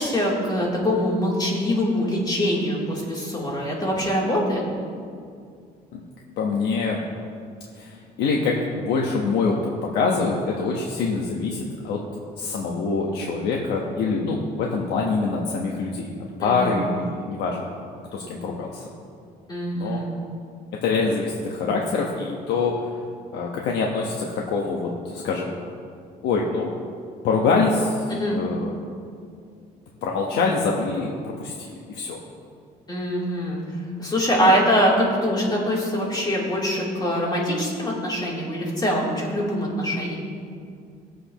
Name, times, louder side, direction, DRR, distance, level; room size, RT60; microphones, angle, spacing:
voice 1, 0.0-4.6 16.4-16.8 19.5-20.1 28.1-28.4 32.9-40.2, equal, 25° left, -4 dB, 3.2 m, -23 dB
voice 2, 6.4-7.0 7.8-12.0 12.4-17.7 18.1-18.9 19.7-20.0 20.7-22.9 23.3-25.5 26.2-26.7 27.2-28.0 28.3-28.7 30.0-31.5 31.9-32.2, left 4 dB, 85° left, -2 dB, 1.2 m, -25 dB
20.0 x 7.8 x 3.0 m, 2.3 s
cardioid pair, 110°, 17 cm